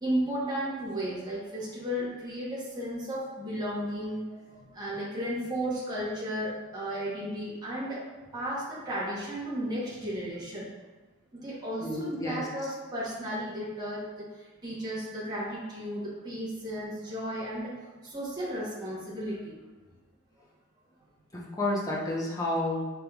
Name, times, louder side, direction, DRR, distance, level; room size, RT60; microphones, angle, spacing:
voice 1, 0.0-8.0 8.3-10.7 11.3-17.7 18.0-19.6, equal, 20° right, -9 dB, 1.0 m, -34 dB
voice 2, 11.8-12.5 21.3-22.8, left 1 dB, 15° left, -5 dB, 0.7 m, -30 dB
5.5 x 3.4 x 2.3 m, 1.3 s
head